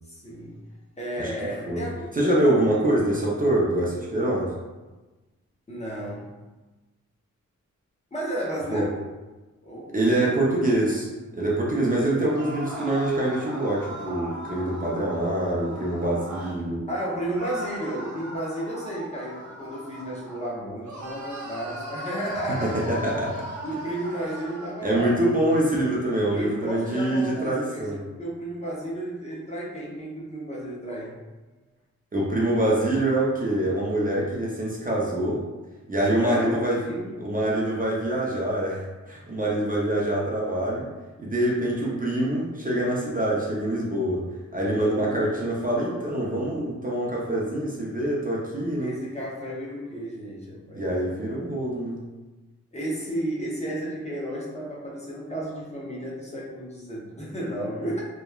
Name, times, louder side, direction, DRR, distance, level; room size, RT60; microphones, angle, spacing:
voice 1, 0.1-0.6 1.0-2.9 5.7-6.3 8.1-9.0 9.6-9.9 16.9-22.8 23.6-25.2 26.3-31.2 36.0-37.2 44.9-45.3 48.8-50.9 52.7-58.0, right 1 dB, 20° left, -5 dB, 0.7 m, -33 dB
voice 2, 2.1-4.5 8.7-8.9 9.9-11.1 11.3-16.9 22.6-23.4 24.8-28.0 32.1-35.4 35.9-36.8 37.2-40.9 41.2-44.2 44.5-48.9 50.7-52.0, right 1 dB, 30° right, -5 dB, 0.5 m, -25 dB
sound 1, 12.2-16.6 17.3-20.5 20.8-24.8, right 1 dB, 70° right, 0.7 m, -39 dB
2.9 x 2.2 x 2.3 m, 1.2 s
wide cardioid pair, 90°, 30 cm